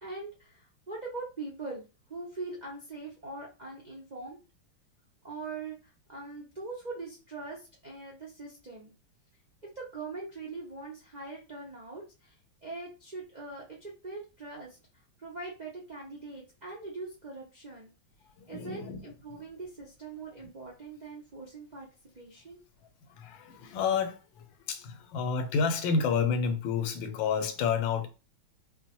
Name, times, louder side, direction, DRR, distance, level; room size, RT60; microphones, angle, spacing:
voice 1, 0.0-4.4 5.2-8.9 9.6-12.3 12.6-14.8 15.2-17.9 18.5-21.9 22.1-22.6, right 3 dB, 70° right, 0.4 m, -42 dB
voice 2, 18.4-19.0 19.3-19.4 23.1-28.1, left 5 dB, 80° left, 1.3 m, -30 dB
4.2 x 2.1 x 2.9 m
omnidirectional pair, 2.1 m